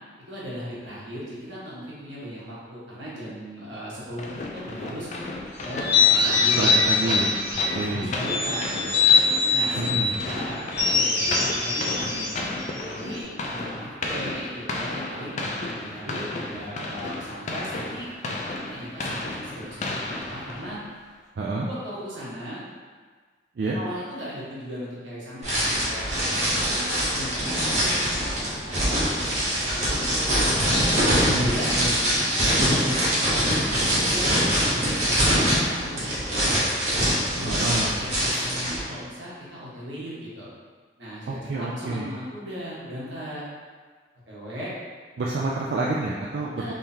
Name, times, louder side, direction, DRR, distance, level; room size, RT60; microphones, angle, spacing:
voice 1, 0.3-4.3 4.5-5.1 5.6-9.0 9.5-10.6 10.9-12.3 12.7-18.1 18.6-20.8 21.6-22.6 23.7-26.0 26.7-30.1 30.5-31.8 32.4-36.7 37.3-40.5 41.0-43.4 44.3-44.7 46.6-46.7, equal, 85° right, -7 dB, 1.3 m, -37 dB
sound 1, 4.2-20.9, left 2 dB, 40° left, 0.3 m, -33 dB
sound 2, 5.7-7.8 8.2-10.1 10.7-13.2, left 4 dB, 65° left, 1.4 m, -22 dB
voice 2, 6.6-7.3 7.7-8.1 9.8-10.1 21.4-21.7 23.6-23.8 31.0-32.0 37.4-37.9 41.3-42.1 45.2-46.7, right 2 dB, 65° right, -4 dB, 0.3 m, -28 dB
sound 3, 25.4-38.8, equal, 40° right, 1.1 m, -23 dB
3.7 x 3.2 x 2.8 m, 1.5 s
head